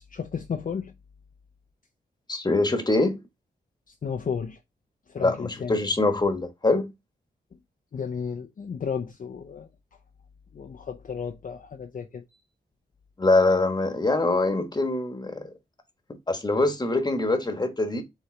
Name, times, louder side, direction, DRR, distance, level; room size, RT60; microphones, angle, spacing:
voice 1, 0.1-0.9 3.9-4.6 5.1-5.8 7.9-9.7 10.5-12.4, left 6 dB, 50° left, 0.5 m, -33 dB
voice 2, 2.3-3.2 5.2-6.9 13.2-15.5 16.3-18.0, left 2 dB, 25° left, 1.2 m, -24 dB
4.9 x 3.2 x 3.1 m
cardioid pair, 60°, 18 cm